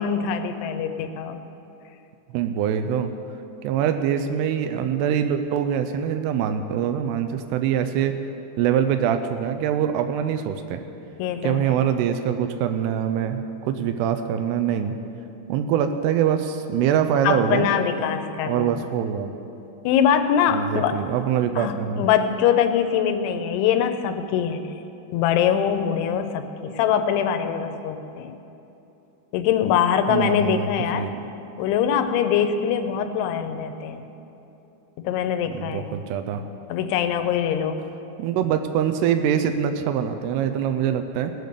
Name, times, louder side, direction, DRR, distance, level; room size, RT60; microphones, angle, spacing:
voice 1, 0.0-1.4 11.2-11.8 17.2-18.7 19.8-20.9 21.6-24.6 25.1-28.4 29.3-31.1 31.6-34.0 35.0-35.8 36.7-37.8, left 8 dB, 90° left, 8 dB, 2.8 m, -23 dB
voice 2, 2.3-3.1 3.6-8.2 8.6-10.8 11.4-14.9 15.5-17.7 18.5-19.3 20.5-22.1 30.1-30.7 30.9-31.2 35.5-36.4 38.2-41.3, right 9 dB, 90° right, 8 dB, 2.6 m, -24 dB
18.5 x 6.8 x 6.6 m, 3.0 s
omnidirectional pair, 4.6 m